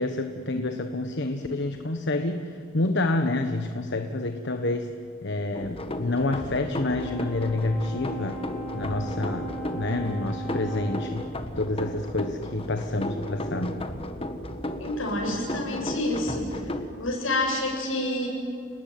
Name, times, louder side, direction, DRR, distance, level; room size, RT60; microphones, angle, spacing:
voice 1, 0.0-4.9 5.2-8.4 8.7-11.3 11.5-13.8, left 2 dB, 60° left, 6 dB, 1.3 m, -28 dB
sound 1, 5.5-16.9, left 1 dB, 30° left, 1.6 m, -35 dB
Brass instrument, 6.8-11.2, right 2 dB, 10° left, 6.9 m, -38 dB
voice 2, 14.8-16.6 17.0-18.3, left 1 dB, 80° left, 0 dB, 8.0 m, -28 dB
30.0 x 19.5 x 9.5 m, 2.5 s
head